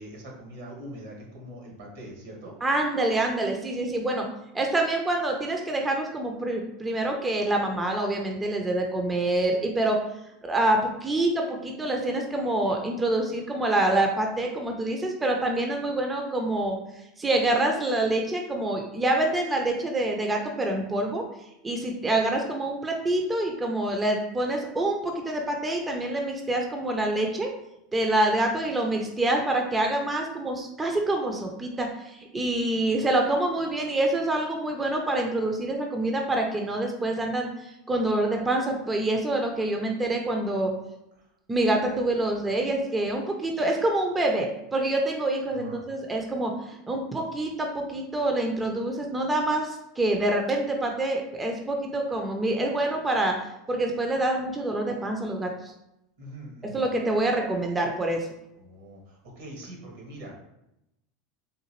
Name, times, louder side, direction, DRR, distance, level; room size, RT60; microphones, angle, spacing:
voice 1, 0.0-2.5 41.2-41.3 45.5-45.8 56.2-56.8 58.6-60.4, right 1 dB, 75° right, -1 dB, 1.4 m, -43 dB
voice 2, 2.6-4.3 4.5-10.0 10.4-16.8 17.2-21.2 21.6-27.5 27.9-40.7 41.5-53.3 53.7-55.7 56.6-58.3, right 1 dB, 15° right, 2 dB, 0.5 m, -26 dB
3.8 x 2.4 x 3.0 m, 0.85 s
supercardioid pair, 105°, 0 cm